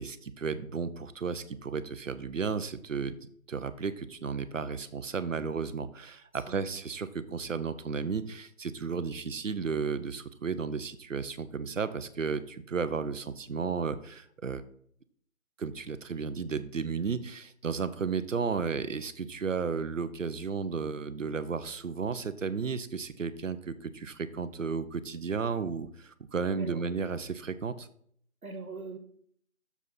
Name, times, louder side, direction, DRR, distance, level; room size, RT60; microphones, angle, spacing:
voice 1, 0.0-3.1 3.5-14.6 15.6-27.9, right 5 dB, 65° right, 14 dB, 0.7 m, -33 dB
voice 2, 28.4-29.0, right 3 dB, 85° right, 8 dB, 1.4 m, -41 dB
6.9 x 4.9 x 5.6 m, 0.64 s
figure-of-eight pair, 160°, 41 cm